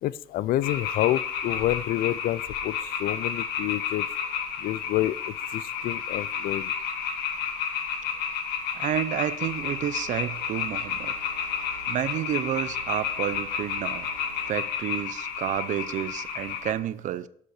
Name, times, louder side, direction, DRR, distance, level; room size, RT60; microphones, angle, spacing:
voice 1, 0.0-4.1 4.6-6.7, left 14 dB, 60° left, 0.4 m, -28 dB
sound 1, 0.6-16.7, left 7 dB, 80° left, 1.7 m, -31 dB
voice 2, 8.7-11.1 11.9-14.1 14.5-17.3, right 11 dB, 50° right, 0.6 m, -30 dB
sound 2, 9.5-14.5, right 5 dB, 80° right, 3.2 m, -49 dB
12.0 x 5.3 x 4.8 m
cardioid pair, 135°, 16 cm